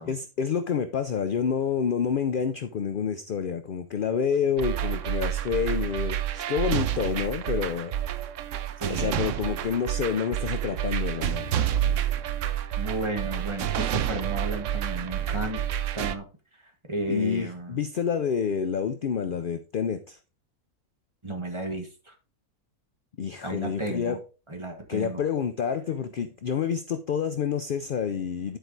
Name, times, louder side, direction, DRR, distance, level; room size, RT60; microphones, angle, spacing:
voice 1, 0.1-8.0 8.9-11.5 17.1-20.2 23.2-24.2 24.9-28.6, left 7 dB, 60° left, 0.5 m, -28 dB
sound 1, 4.6-16.1, right 11 dB, 65° right, 0.9 m, -29 dB
voice 2, 8.8-9.2 12.8-15.6 15.9-16.3 16.9-17.8 21.2-22.1 23.4-24.2 24.5-25.2, right 1 dB, 20° right, 1.3 m, -33 dB
10.5 x 4.6 x 3.8 m
omnidirectional pair, 1.5 m